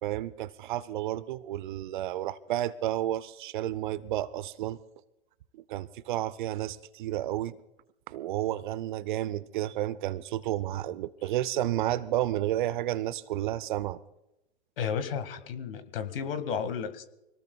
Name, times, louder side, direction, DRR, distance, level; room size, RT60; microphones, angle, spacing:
voice 1, 0.0-4.8 5.5-7.6 8.1-14.0, right 13 dB, 45° right, 0.7 m, -31 dB
voice 2, 14.8-17.0, left 7 dB, 55° left, 1.9 m, -33 dB
25.5 x 18.5 x 2.3 m
figure-of-eight pair, 110°, 33 cm